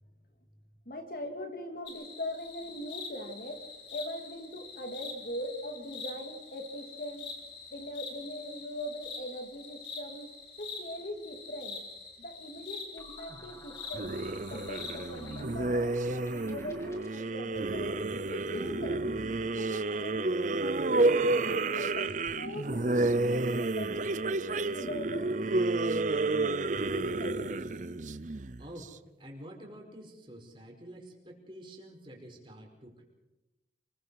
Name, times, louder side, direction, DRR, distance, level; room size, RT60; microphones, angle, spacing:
voice 1, 0.8-7.3 7.7-10.3 10.6-11.8 12.2-14.2 14.5-19.0 19.4-20.5 20.8-25.3 25.8-27.6, left 1 dB, 55° left, 4 dB, 3.0 m, -41 dB
sound 1, 1.9-15.4, left 4 dB, 80° left, 4.7 m, -45 dB
sound 2, 13.0-17.4, left 1 dB, 15° left, 2.3 m, -53 dB
sound 3, 13.9-28.8, right 2 dB, 45° right, 0.7 m, -30 dB
voice 2, 28.6-33.0, right 1 dB, 30° right, 0 dB, 5.0 m, -48 dB
29.5 x 22.0 x 4.9 m, 1.1 s
head